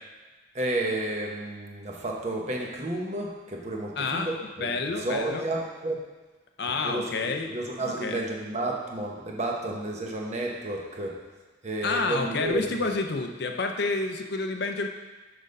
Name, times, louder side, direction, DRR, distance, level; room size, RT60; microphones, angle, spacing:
voice 1, 0.5-6.0 6.7-11.2 11.6-12.9, right 2 dB, 35° right, -1 dB, 1.0 m, -32 dB
voice 2, 4.0-4.3 4.6-5.4 6.6-7.5 7.8-8.3 11.8-14.9, left 3 dB, 55° left, 5 dB, 0.5 m, -29 dB
6.4 x 5.1 x 5.3 m, 1.2 s
head